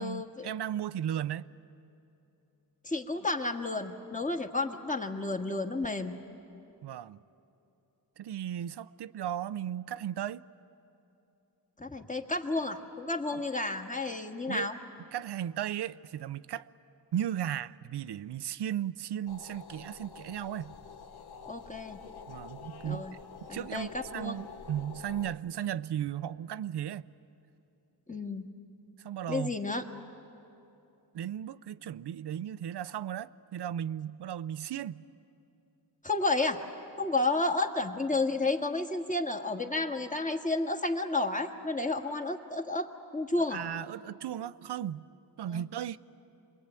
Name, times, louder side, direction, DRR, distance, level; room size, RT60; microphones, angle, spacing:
voice 1, 0.0-1.5 6.8-7.2 8.2-10.4 13.3-13.4 14.5-14.7 15.1-16.7 17.1-20.7 22.3-23.1 23.5-27.1 29.0-29.6 31.1-35.0 43.5-45.0 45.4-46.0, right 10 dB, 80° right, 0.6 m, -36 dB
voice 2, 2.8-6.2 11.8-14.8 21.4-22.0 22.8-23.1 23.5-24.4 28.1-28.5 29.3-29.8 36.0-36.6 37.0-42.9 43.1-43.6 45.5-45.7, left 2 dB, 20° left, 1.6 m, -31 dB
sound 1, 19.3-25.3, left 6 dB, 65° left, 1.0 m, -48 dB
25.5 x 21.5 x 9.0 m
cardioid pair, 65°, 40 cm